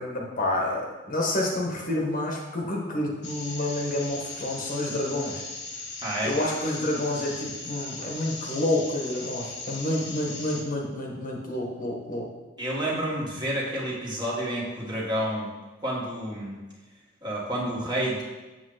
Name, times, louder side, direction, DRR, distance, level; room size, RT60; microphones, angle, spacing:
voice 1, 0.0-5.4 6.2-12.3, left 1 dB, 45° left, -1 dB, 1.6 m, -29 dB
sound 1, 3.2-10.6, left 3 dB, 65° left, 1.7 m, -38 dB
voice 2, 6.0-6.3 12.6-15.5 15.8-16.6 17.2-18.2, right 1 dB, 20° right, -4 dB, 2.0 m, -29 dB
7.9 x 7.3 x 4.0 m, 1.2 s
head